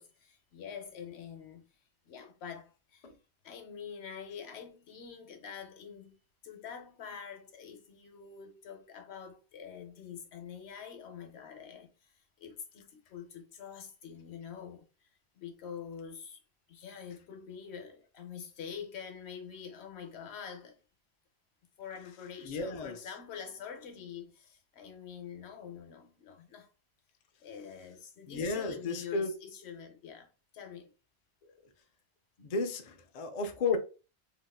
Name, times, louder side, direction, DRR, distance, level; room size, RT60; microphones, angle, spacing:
voice 1, 0.0-1.6 2.0-3.1 3.4-6.2 6.4-12.1 12.4-14.8 15.3-16.4 16.7-20.8 21.8-26.7 27.4-30.9, left 7 dB, 80° left, 1.0 m, -46 dB
voice 2, 22.4-23.0 28.3-29.3 32.4-33.8, left 4 dB, 50° left, 0.5 m, -33 dB
3.4 x 2.8 x 2.3 m
omnidirectional pair, 1.1 m